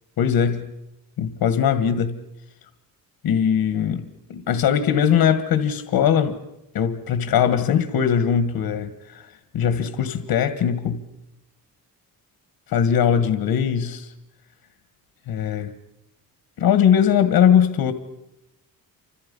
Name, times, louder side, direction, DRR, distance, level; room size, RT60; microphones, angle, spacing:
voice 1, 0.2-0.7 1.2-2.2 3.2-6.4 6.7-11.0 12.7-14.1 15.3-15.7 16.6-17.9, left 8 dB, 90° left, 1.7 m, -20 dB
29.5 x 26.5 x 5.5 m
wide cardioid pair, 160°, 36 cm